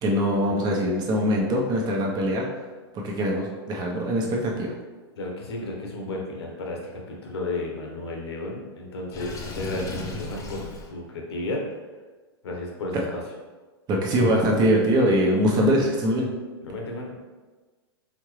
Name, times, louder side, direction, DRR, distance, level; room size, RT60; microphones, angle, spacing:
voice 1, 0.0-2.4 2.9-4.7 13.9-16.3, equal, 30° right, -1 dB, 1.0 m, -22 dB
voice 2, 5.2-11.6 12.4-13.2 16.6-17.2, left 2 dB, 75° left, 0 dB, 1.2 m, -33 dB
Water / Sink (filling or washing), 9.1-10.9, left 3 dB, 25° left, 0.7 m, -35 dB
4.4 x 3.7 x 3.2 m, 1.3 s
hypercardioid pair, 115°, 14 cm